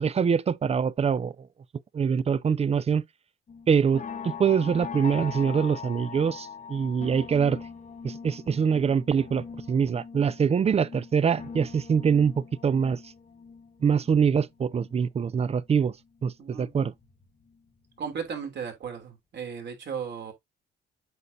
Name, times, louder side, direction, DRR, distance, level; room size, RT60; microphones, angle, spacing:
voice 1, 0.0-1.3 1.9-3.0 3.7-7.6 8.0-13.0 13.8-15.9 16.2-16.9, right 6 dB, 30° right, 0.4 m, -24 dB
sound 1, 3.5-15.6 16.0-17.6 18.0-18.3 18.6-18.7, left 6 dB, 40° left, 1.1 m, -42 dB
voice 2, 16.4-16.7 18.0-20.3, right 7 dB, 60° right, 3.0 m, -35 dB
8.1 x 5.2 x 2.6 m
cardioid pair, 90°, 20 cm